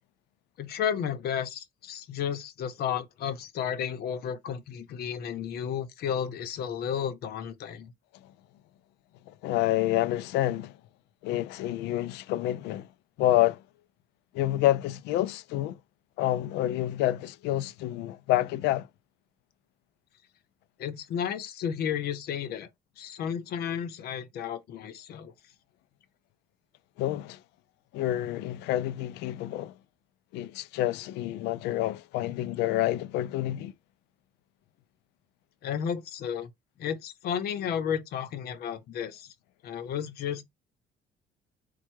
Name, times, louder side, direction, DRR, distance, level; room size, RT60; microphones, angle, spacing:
voice 1, 0.6-7.9 20.8-22.7 23.0-25.3 35.6-36.5 36.8-39.3 39.6-40.4, left 8 dB, 70° left, 0.9 m, -32 dB
voice 2, 9.3-10.8 11.2-12.9 13.2-13.6 14.3-15.8 16.2-18.9 27.0-27.4 27.9-29.7 30.3-33.7, left 14 dB, 85° left, 0.4 m, -28 dB
4.4 x 2.3 x 4.5 m
cardioid pair, 110°, 17 cm